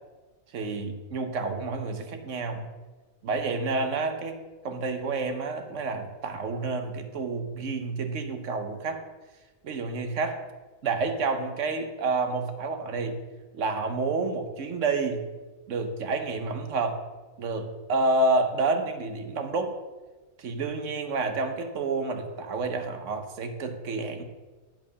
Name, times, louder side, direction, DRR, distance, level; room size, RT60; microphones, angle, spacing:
voice 1, 0.5-2.7 3.2-4.4 4.6-9.0 9.6-10.4 10.8-13.2 13.5-15.2 15.7-17.0 17.4-19.7 20.4-24.2, right 3 dB, 60° right, 6 dB, 1.1 m, -29 dB
8.8 x 4.6 x 5.5 m, 1.3 s
omnidirectional pair, 1.5 m